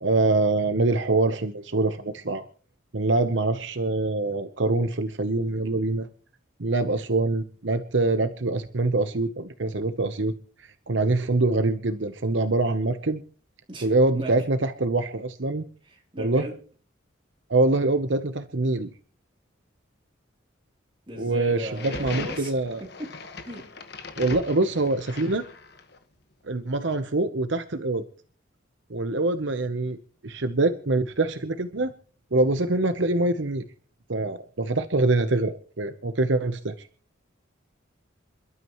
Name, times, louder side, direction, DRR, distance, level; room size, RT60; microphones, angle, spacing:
voice 1, 0.0-2.4 2.9-6.1 6.6-10.3 10.6-13.2 13.8-15.7 16.2-16.5 17.5-18.9 21.2-22.8 24.2-25.4 26.4-28.0 28.9-30.0 30.2-31.9 32.3-33.6 34.1-36.7, right 2 dB, 70° right, 9 dB, 0.9 m, -24 dB
voice 2, 15.8-16.6 21.1-22.5 22.8-23.2 23.4-23.7, right 1 dB, 25° right, 0 dB, 3.4 m, -37 dB
sound 1, 21.7-26.0, left 3 dB, 55° left, 1.5 m, -39 dB
28.0 x 12.5 x 3.1 m, 0.41 s
head